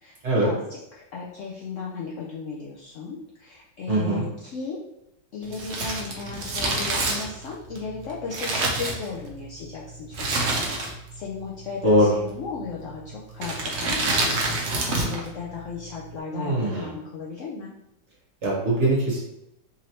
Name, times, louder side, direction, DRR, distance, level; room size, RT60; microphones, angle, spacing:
voice 1, 0.0-4.8 5.3-10.5 10.7-17.7, left 5 dB, 90° left, -3 dB, 0.6 m, -36 dB
voice 2, 3.9-4.3 11.8-12.1 16.3-17.0 18.4-19.2, right 1 dB, 45° right, -5 dB, 1.3 m, -22 dB
Crumpling crinkling, 5.5-9.5 10.1-11.2 11.4-11.5 12.3-12.7 13.3-15.3 15.5-15.6, right 2 dB, 60° right, 0.7 m, -27 dB
3.7 x 3.1 x 2.8 m, 0.83 s
omnidirectional pair, 1.9 m